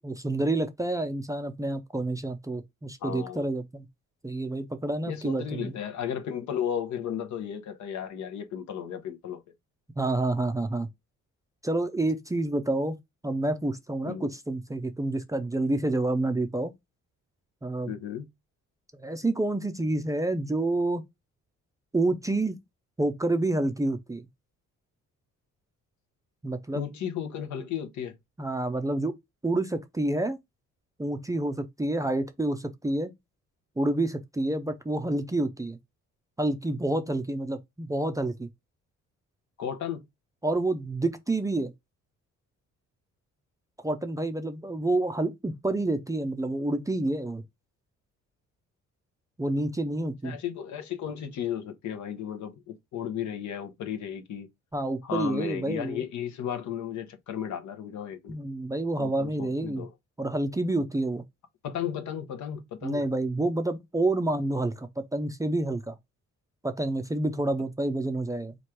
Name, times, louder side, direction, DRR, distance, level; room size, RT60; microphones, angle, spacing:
voice 1, 0.0-3.9 4.2-5.7 10.0-10.9 11.6-13.0 13.2-16.7 17.6-17.9 18.9-21.0 21.9-22.6 23.0-24.3 26.4-26.9 28.4-29.2 29.4-30.4 31.0-33.1 33.8-35.8 36.4-38.5 40.4-41.7 43.8-47.4 49.4-50.4 54.7-56.0 58.3-59.9 60.2-61.2 62.8-66.0 66.6-68.6, right 2 dB, 10° right, 0.4 m, -28 dB
voice 2, 3.0-3.5 5.1-9.4 14.1-14.3 17.9-18.3 26.7-28.2 39.6-40.1 50.2-54.5 55.0-58.4 59.0-59.9 61.6-63.1, left 9 dB, 70° left, 0.8 m, -34 dB
3.1 x 2.5 x 4.3 m
cardioid pair, 90°, 30 cm